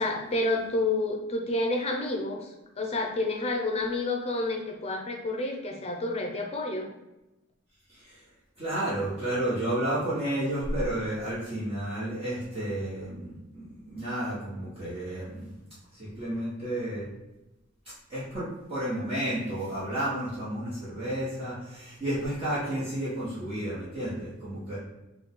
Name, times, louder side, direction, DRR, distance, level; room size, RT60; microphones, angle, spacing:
voice 1, 0.0-6.9, left 2 dB, 30° left, 2 dB, 0.7 m, -29 dB
voice 2, 7.9-8.2 8.6-15.5 15.9-17.1 18.1-24.8, right 1 dB, 30° right, -11 dB, 1.4 m, -31 dB
5.1 x 2.4 x 3.8 m, 0.99 s
head